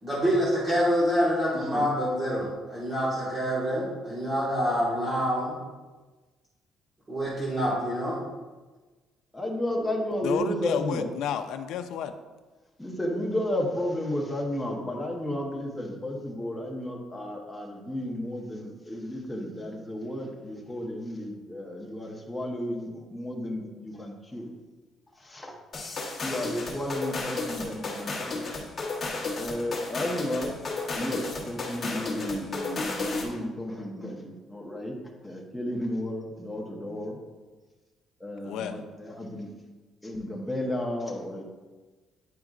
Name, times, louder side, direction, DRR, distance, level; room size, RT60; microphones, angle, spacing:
voice 1, 0.0-5.5 7.1-8.2, equal, 20° right, -9 dB, 1.6 m, -26 dB
voice 2, 1.5-1.8 9.3-11.1 12.8-24.5 25.2-25.5 26.2-28.6 29.3-30.5 30.9-35.0 35.2-37.2 38.2-39.5 40.0-41.4, left 1 dB, 5° left, -2 dB, 0.8 m, -33 dB
voice 3, 10.2-12.2 38.4-38.8, left 8 dB, 75° left, 8 dB, 0.4 m, -31 dB
sound 1, 25.7-33.4, left 3 dB, 25° left, 1.2 m, -33 dB
9.2 x 5.0 x 2.4 m, 1.3 s
cardioid pair, 170°, 0 cm